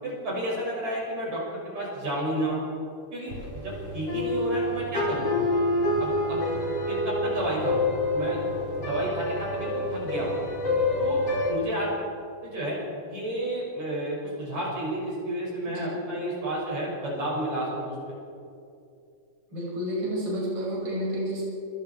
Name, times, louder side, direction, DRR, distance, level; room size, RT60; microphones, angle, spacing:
voice 1, 0.0-2.6 3.1-5.3 6.0-6.4 6.9-7.9 8.1-8.4 8.8-10.3 11.0-11.9 12.4-18.1, right 1 dB, 55° right, -4 dB, 7.6 m, -31 dB
sound 1, 3.3-11.5, left 2 dB, 45° left, 5.5 m, -27 dB
voice 2, 15.7-16.1 19.5-21.4, equal, 30° right, -4 dB, 6.8 m, -30 dB
28.5 x 27.0 x 4.7 m, 2.5 s
omnidirectional pair, 3.8 m